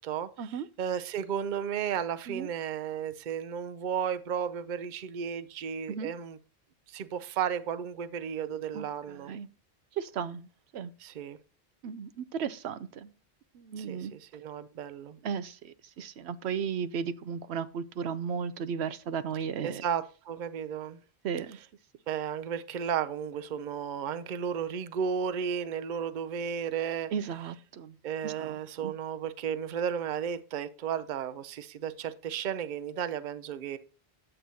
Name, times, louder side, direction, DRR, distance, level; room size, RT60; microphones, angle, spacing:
voice 1, 0.0-6.4 6.9-9.3 11.0-11.4 13.8-15.2 19.6-21.0 22.1-27.1 28.0-33.8, right 8 dB, 55° right, 0.7 m, -34 dB
voice 2, 8.7-9.5 10.0-10.5 10.7-10.9 11.8-13.1 13.5-14.1 15.2-19.8 21.2-21.6 27.1-28.0 28.2-28.9, right 7 dB, 80° right, 0.9 m, -35 dB
9.9 x 7.7 x 2.8 m
omnidirectional pair, 1.1 m